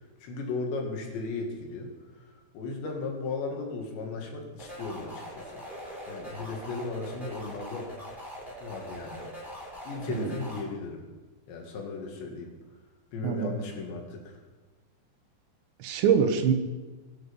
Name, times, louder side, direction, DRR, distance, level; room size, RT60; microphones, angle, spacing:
voice 1, 0.2-1.9 2.5-5.6 6.1-7.9 8.6-9.3 9.8-11.0 11.5-12.5 13.1-14.4, left 3 dB, 75° left, 1 dB, 4.4 m, -36 dB
sound 1, 4.6-10.6, equal, ahead, 5.4 m, -42 dB
voice 2, 13.2-13.5 15.8-16.5, right 7 dB, 80° right, 7 dB, 3.5 m, -24 dB
22.0 x 9.1 x 5.4 m, 1.2 s
omnidirectional pair, 5.1 m